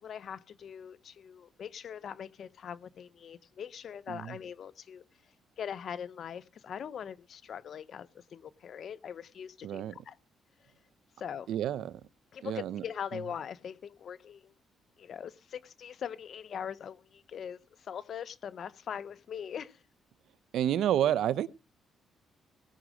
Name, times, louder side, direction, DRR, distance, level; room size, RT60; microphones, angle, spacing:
voice 1, 0.0-5.0 5.6-10.2 11.2-11.5 12.3-14.5 15.0-19.8, left 8 dB, 60° left, 0.8 m, -41 dB
voice 2, 9.6-10.0 11.5-12.0 12.4-12.8 13.1-13.2 20.5-21.5, right 11 dB, 80° right, 0.7 m, -29 dB
18.0 x 6.2 x 6.4 m
cardioid pair, 90°, 0 cm